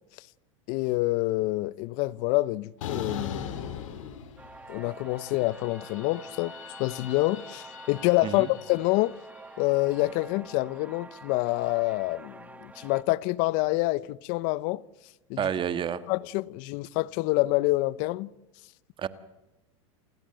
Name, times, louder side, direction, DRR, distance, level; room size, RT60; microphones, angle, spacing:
voice 1, 0.7-4.1 4.7-6.5 6.8-9.1 9.6-14.8 15.3-15.4 16.1-18.3, left 20 dB, 55° left, 0.8 m, -27 dB
sound 1, 2.8-4.8 5.1-9.4, left 7 dB, 75° left, 3.6 m, -40 dB
sound 2, 4.4-13.0, right 2 dB, 10° right, 1.6 m, -47 dB
voice 2, 15.4-16.0 19.0-19.1, right 8 dB, 30° right, 1.6 m, -29 dB
29.0 x 16.0 x 7.9 m
hypercardioid pair, 110°, 17 cm